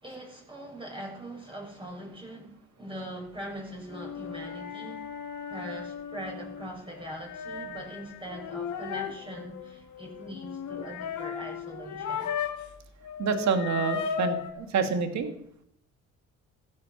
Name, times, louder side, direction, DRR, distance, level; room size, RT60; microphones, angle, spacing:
voice 1, 0.0-5.1 5.5-12.3, right 1 dB, 15° right, 7.4 m, -41 dB
sound 1, 3.9-12.7 13.0-14.5, left 7 dB, 75° left, 2.5 m, -36 dB
voice 2, 13.2-15.3, right 5 dB, 65° right, 2.5 m, -27 dB
16.0 x 13.5 x 6.1 m
cardioid pair, 90°, 30 cm